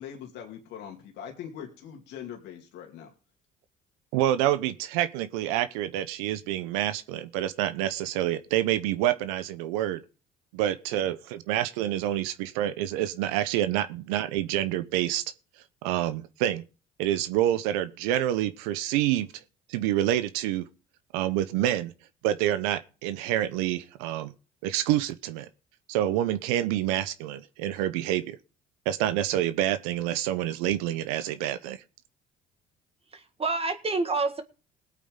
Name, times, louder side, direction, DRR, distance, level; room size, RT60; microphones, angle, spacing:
voice 1, 0.0-3.1, left 8 dB, 70° left, 2.5 m, -42 dB
voice 2, 4.1-10.0 10.5-15.2 15.8-16.6 17.0-19.3 19.7-20.7 21.1-21.9 22.2-24.3 24.6-25.5 25.9-28.4 28.9-31.8, right 12 dB, 85° right, 0.8 m, -27 dB
voice 3, 33.1-34.4, right 3 dB, 30° right, 1.7 m, -28 dB
20.0 x 8.5 x 3.8 m
supercardioid pair, 70°, 18 cm